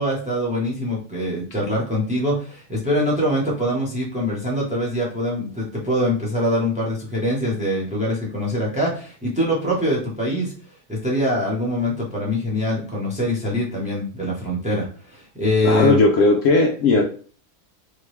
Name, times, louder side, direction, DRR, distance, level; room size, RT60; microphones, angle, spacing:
voice 1, 0.0-10.5 10.9-16.0, equal, 5° right, -4 dB, 0.8 m, -23 dB
voice 2, 15.6-17.0, left 3 dB, 70° left, 1 dB, 0.8 m, -16 dB
3.6 x 2.2 x 3.2 m, 0.42 s
omnidirectional pair, 1.6 m